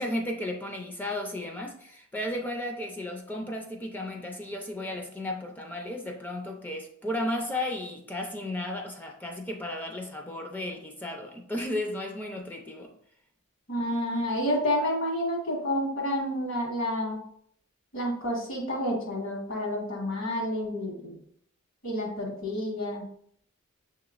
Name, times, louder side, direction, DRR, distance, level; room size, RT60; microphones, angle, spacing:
voice 1, 0.0-12.9, left 1 dB, 10° left, 2 dB, 0.4 m, -34 dB
voice 2, 13.7-17.2 17.9-21.2 21.8-23.1, left 1 dB, 65° left, -1 dB, 1.6 m, -29 dB
6.5 x 2.9 x 2.4 m, 0.66 s
head